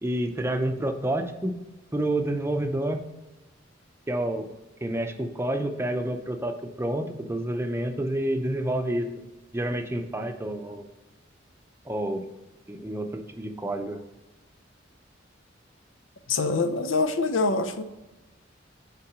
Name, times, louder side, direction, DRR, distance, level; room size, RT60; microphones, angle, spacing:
voice 1, 0.0-1.6 1.9-3.0 4.1-4.5 4.8-6.5 6.8-9.1 9.5-10.9 11.9-12.3 12.7-14.0, right 1 dB, 15° right, 6 dB, 0.6 m, -28 dB
voice 2, 16.3-17.8, left 3 dB, 85° left, 8 dB, 0.7 m, -25 dB
5.8 x 4.5 x 6.1 m, 1.1 s
head